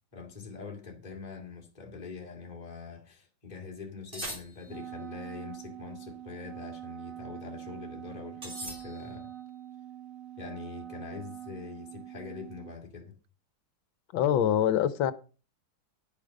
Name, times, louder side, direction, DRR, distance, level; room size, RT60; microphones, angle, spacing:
voice 1, 0.1-9.3 10.4-13.2, left 5 dB, 20° left, 2.2 m, -44 dB
sound 1, 4.1-5.0 8.4-9.4, equal, 25° right, 3.5 m, -41 dB
Wind instrument woodwind instrument, 4.6-12.8, right 11 dB, 60° right, 0.9 m, -44 dB
voice 2, 14.1-15.1, left 10 dB, 75° left, 1.5 m, -24 dB
10.5 x 8.6 x 5.1 m
omnidirectional pair, 2.2 m